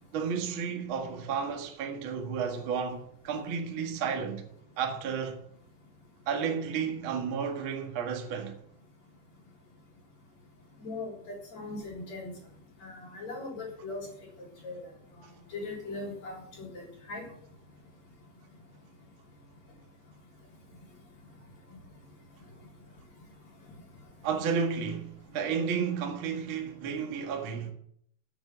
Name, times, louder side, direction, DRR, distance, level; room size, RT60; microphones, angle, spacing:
voice 1, 0.1-4.4 4.8-5.4 6.3-8.5 24.2-27.7, right 6 dB, 55° right, 1.4 m, -32 dB
voice 2, 10.8-12.3 12.8-14.1 14.6-14.8 15.5-17.3, left 3 dB, 40° left, 4.8 m, -39 dB
9.3 x 8.7 x 9.6 m
omnidirectional pair, 5.2 m